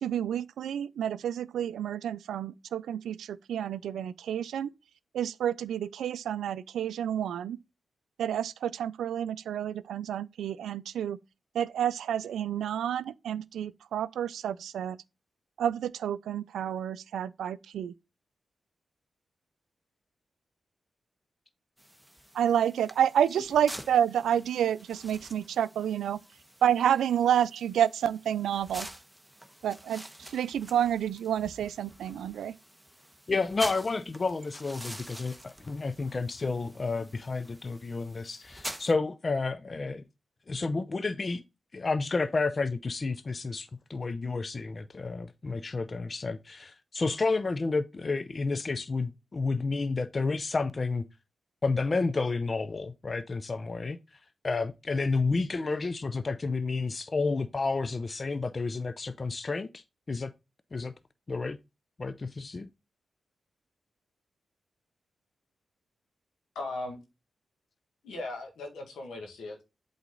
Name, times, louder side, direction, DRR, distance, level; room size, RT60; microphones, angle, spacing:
voice 1, 0.0-4.7 5.1-7.6 8.2-11.2 11.5-15.0 15.6-17.9 22.3-26.2 26.6-28.9 29.6-30.0 30.3-32.5, right 9 dB, 85° right, 0.3 m, -29 dB
sound 1, 21.8-38.9, right 1 dB, 5° right, 1.0 m, -47 dB
voice 2, 33.3-40.0 40.5-41.4 41.7-51.1 51.6-54.0 54.4-59.8 60.1-60.3 60.7-60.9 61.3-61.6 62.0-62.7, left 3 dB, 45° left, 0.5 m, -30 dB
voice 3, 66.6-67.0 68.0-69.6, left 2 dB, 85° left, 1.8 m, -38 dB
8.1 x 3.9 x 3.8 m
supercardioid pair, 40°, 0 cm